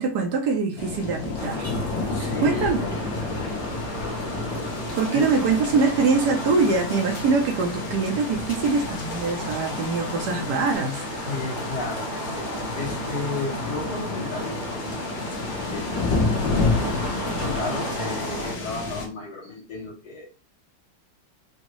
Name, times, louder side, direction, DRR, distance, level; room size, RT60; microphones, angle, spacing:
voice 1, 0.0-1.7 2.2-2.8 5.0-11.3, right 4 dB, 70° right, 1.1 m, -23 dB
sound 1, 0.8-19.1, left 3 dB, 85° left, 1.7 m, -31 dB
Traffic noise roadway noise, 1.4-18.5, equal, 30° left, 1.1 m, -33 dB
voice 2, 2.1-2.8 5.1-5.3 11.2-16.0 16.7-20.3, left 3 dB, 65° left, 2.1 m, -34 dB
5.3 x 2.2 x 3.0 m
omnidirectional pair, 2.0 m